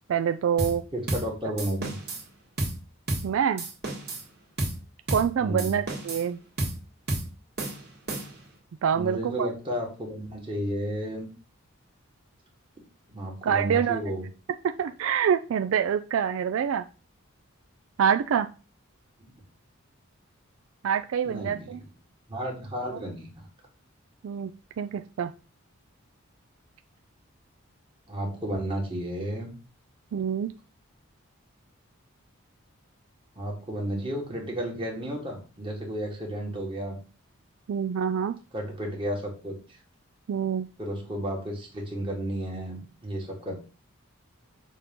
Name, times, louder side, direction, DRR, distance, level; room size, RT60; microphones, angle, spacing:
voice 1, 0.1-0.8 3.2-3.7 5.1-6.4 8.8-9.5 13.4-14.0 14.6-16.9 18.0-18.5 20.8-21.8 22.9-23.0 24.2-24.5 24.8-25.3 30.1-30.5 37.7-38.4 40.3-40.7, right 8 dB, 70° right, 8 dB, 0.3 m, -26 dB
sound 1, 0.6-0.8 1.1-1.3 1.6-2.2 2.6-2.8 3.1-3.3 3.6-4.3 4.6-4.8 5.1-5.3 5.6-6.3 6.6-6.8 7.1-7.3 7.6-8.5, right 2 dB, 50° right, 1.8 m, -31 dB
voice 2, 0.9-2.0 5.4-5.7 8.9-11.3 13.1-14.3 19.2-19.3 21.2-21.8 22.3-23.5 28.1-29.5 33.3-37.0 38.5-39.8 40.8-43.6, equal, 25° right, -1 dB, 1.7 m, -32 dB
6.3 x 2.8 x 5.2 m, 0.34 s
head